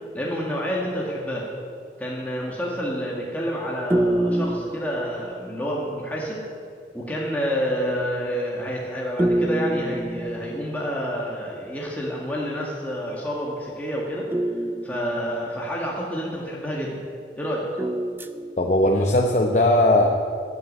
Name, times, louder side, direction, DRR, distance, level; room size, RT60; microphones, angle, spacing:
voice 1, 0.1-1.5 2.0-6.4 6.9-14.3 14.8-17.0 17.4-17.7, equal, 10° left, -4 dB, 1.8 m, -28 dB
sound 1, 3.9-5.6 9.2-11.0 14.3-15.9 17.8-19.0, right 1 dB, 10° right, 0.4 m, -26 dB
voice 2, 18.6-20.1, left 1 dB, 40° left, 1 dB, 0.8 m, -18 dB
13.5 x 8.3 x 8.5 m, 2.3 s
head